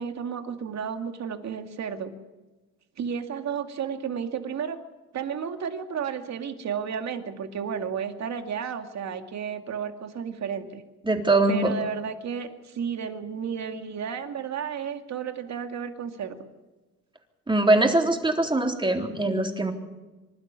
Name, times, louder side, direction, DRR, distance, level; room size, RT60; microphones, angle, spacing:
voice 1, 0.0-2.1 3.0-4.8 5.1-10.8 11.5-16.4, right 7 dB, 60° right, 6 dB, 2.4 m, -32 dB
voice 2, 11.0-11.7 17.5-19.7, right 2 dB, 15° right, 2 dB, 3.7 m, -22 dB
26.0 x 12.5 x 9.8 m, 1.2 s
cardioid pair, 90°, 30 cm